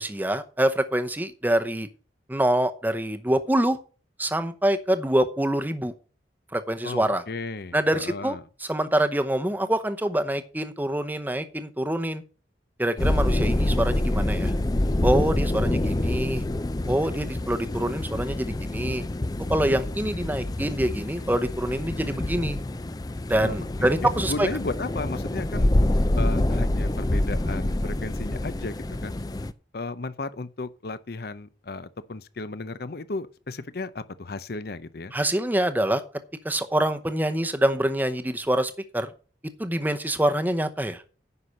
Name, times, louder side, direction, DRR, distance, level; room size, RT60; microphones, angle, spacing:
voice 1, 0.0-1.9 2.3-3.8 4.2-5.9 6.5-7.2 7.7-8.4 8.6-12.2 12.8-14.5 15.0-16.4 16.9-19.0 19.5-22.6 23.3-24.5 35.1-36.0 36.4-39.1 39.6-41.0, right 1 dB, 10° right, 0.8 m, -25 dB
voice 2, 6.8-8.4 23.4-25.7 26.2-28.8 29.0-29.2 29.7-35.1, left 3 dB, 55° left, 0.7 m, -34 dB
sound 1, 13.0-29.5, left 1 dB, 20° left, 0.5 m, -26 dB
9.7 x 5.8 x 6.5 m
head